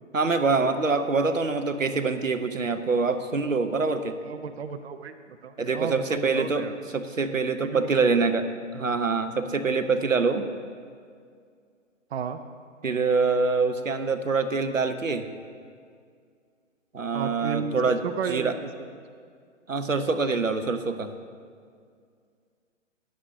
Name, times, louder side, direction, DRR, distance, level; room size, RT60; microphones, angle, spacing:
voice 1, 0.1-4.2 5.6-6.7 6.9-10.5 12.8-15.3 16.9-18.5 19.7-21.1, right 4 dB, 90° right, 9 dB, 0.8 m, -25 dB
voice 2, 4.2-5.1 5.4-6.7 7.2-7.3 7.6-8.2 12.1-12.4 17.1-18.7, right 6 dB, 55° right, 9 dB, 0.6 m, -33 dB
15.0 x 10.5 x 2.7 m, 2.1 s
figure-of-eight pair, 125°, 38 cm